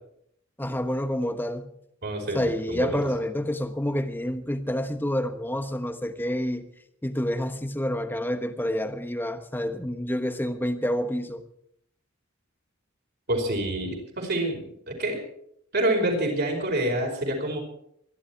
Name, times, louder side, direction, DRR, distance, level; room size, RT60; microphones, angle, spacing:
voice 1, 0.6-1.7 2.3-6.7 7.0-11.4, equal, 10° left, 1.1 m, -28 dB
voice 2, 2.0-3.0 13.3-15.2 15.7-17.6, right 1 dB, 55° right, 5.2 m, -27 dB
24.5 x 11.0 x 4.6 m
head